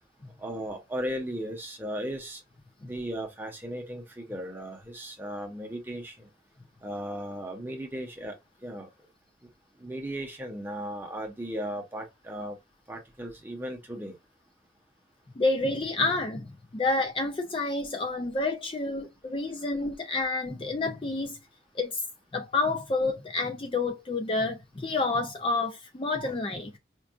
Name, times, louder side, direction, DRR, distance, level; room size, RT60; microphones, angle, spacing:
voice 1, 0.4-2.4 2.8-6.3 6.8-8.3 8.6-8.9 9.8-12.6 12.9-14.2, equal, 10° right, 0.9 m, -36 dB
voice 2, 15.4-21.4 21.7-22.0 22.3-26.8, left 3 dB, 30° left, 0.4 m, -29 dB
4.5 x 2.3 x 2.4 m
head